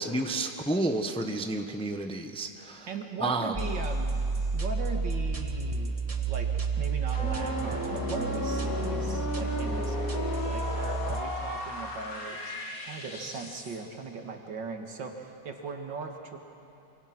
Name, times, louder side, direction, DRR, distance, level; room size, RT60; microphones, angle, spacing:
voice 1, 0.0-2.9 3.2-3.5, right 2 dB, 5° left, 5 dB, 0.8 m, -30 dB
voice 2, 2.9-4.3 4.5-16.4, right 4 dB, 85° right, 3 dB, 2.6 m, -39 dB
sound 1, 3.5-11.2, right 4 dB, 20° right, 1.3 m, -31 dB
sound 2, 7.1-13.8, left 1 dB, 50° left, 2.6 m, -35 dB
27.0 x 24.5 x 6.1 m, 2.7 s
omnidirectional pair, 1.9 m